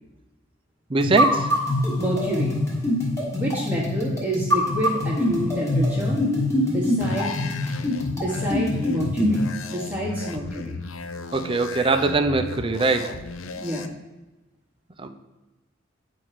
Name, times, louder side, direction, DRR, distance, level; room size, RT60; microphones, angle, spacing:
voice 1, 0.9-1.5 11.3-13.3 15.0-15.1, right 3 dB, 25° right, 7 dB, 0.5 m, -22 dB
sound 1, 1.0-9.5, left 1 dB, 15° left, 1.4 m, -24 dB
voice 2, 2.0-2.6 3.3-6.2 6.6-7.6 8.1-10.8 13.5-13.9, right 1 dB, 10° right, -6 dB, 1.2 m, -28 dB
sound 2, 7.0-13.9, left 4 dB, 90° left, 0.5 m, -36 dB
9.0 x 4.3 x 4.9 m, 1.0 s
head